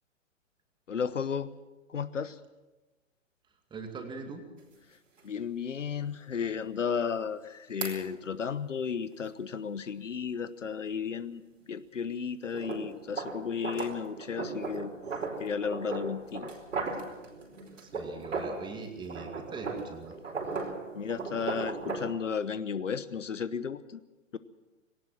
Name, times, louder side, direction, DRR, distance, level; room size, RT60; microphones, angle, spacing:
voice 1, 0.9-1.5 1.9-2.4 5.2-11.4 11.7-14.9 15.4-16.5 20.9-24.0, left 6 dB, 65° left, 15 dB, 1.1 m, -34 dB
voice 2, 3.7-4.4 17.8-20.2, right 4 dB, 10° right, 5 dB, 2.4 m, -42 dB
sound 1, 4.6-4.7 5.2-5.3 7.8-8.0 12.5-18.7 19.0-22.1, right 4 dB, 65° right, 4.6 m, -37 dB
20.0 x 18.0 x 7.5 m, 1.1 s
figure-of-eight pair, 120°, 39 cm